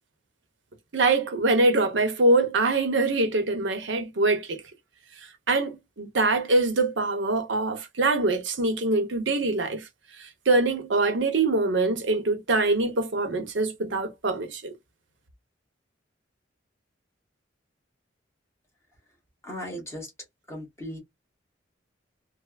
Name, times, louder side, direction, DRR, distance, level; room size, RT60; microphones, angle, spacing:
voice 1, 0.9-4.6 5.5-9.8 10.2-14.7, right 2 dB, 75° right, 0.8 m, -24 dB
voice 2, 19.4-20.1 20.5-21.0, equal, 15° left, 1.3 m, -37 dB
3.3 x 2.1 x 2.3 m
head